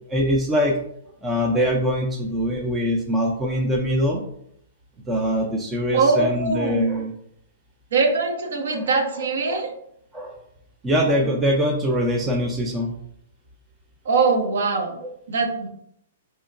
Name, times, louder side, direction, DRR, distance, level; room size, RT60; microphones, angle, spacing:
voice 1, 0.1-0.8 1.2-4.2 5.1-7.1 8.7-9.6 10.1-10.4 10.8-13.0 15.0-15.1, equal, 10° right, -1 dB, 0.4 m, -23 dB
voice 2, 5.9-6.8 7.9-9.7 14.0-15.0 15.3-15.7, right 4 dB, 75° right, 3 dB, 0.9 m, -22 dB
4.3 x 2.9 x 2.5 m, 0.72 s
hypercardioid pair, 150°, 0 cm